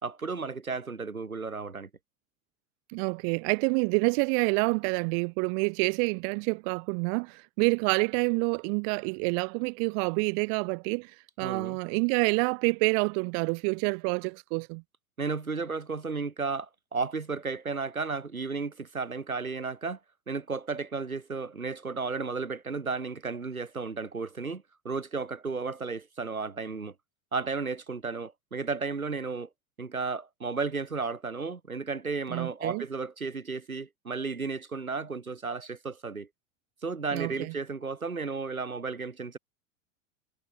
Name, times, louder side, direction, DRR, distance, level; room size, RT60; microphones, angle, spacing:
voice 1, 0.0-1.9 11.4-11.8 15.2-20.0 20.3-26.9 27.3-29.5 29.8-36.3 36.8-39.4, right 4 dB, 85° right, 2.3 m, -33 dB
voice 2, 2.9-14.8 32.3-32.8 37.1-37.5, right 40 dB or more, 40° right, 0.6 m, -28 dB
figure-of-eight pair, 85°, 41 cm